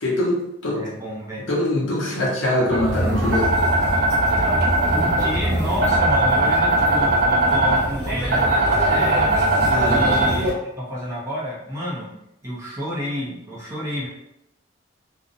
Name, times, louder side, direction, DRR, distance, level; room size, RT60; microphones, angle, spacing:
voice 1, 0.0-0.8 1.5-3.5 9.7-10.0, left 1 dB, 65° left, -3 dB, 0.7 m, -23 dB
voice 2, 0.7-1.5 2.0-2.4 4.9-10.5 10.8-12.1 12.4-14.1, equal, 15° right, -6 dB, 0.5 m, -30 dB
sound 1, 2.7-10.5, right 1 dB, 55° right, 0.8 m, -19 dB
2.5 x 2.0 x 2.5 m, 0.86 s
head